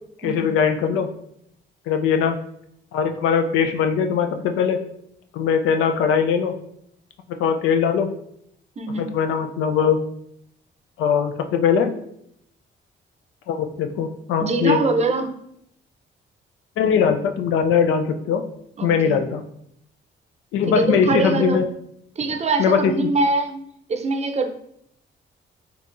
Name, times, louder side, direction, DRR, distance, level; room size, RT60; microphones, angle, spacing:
voice 1, 0.2-1.1 1.9-2.4 2.9-4.8 5.3-6.5 7.3-8.1 9.0-10.0 11.0-11.9 13.5-14.8 16.8-18.4 18.8-19.4 20.5-21.6 22.6-23.1, left 7 dB, 90° left, 6 dB, 0.4 m, -20 dB
voice 2, 8.8-9.1 14.4-15.3 18.8-19.2 20.7-21.6 22.2-24.5, right 3 dB, 35° right, 5 dB, 0.5 m, -23 dB
3.7 x 3.0 x 2.5 m, 0.71 s
cardioid pair, 70°, 21 cm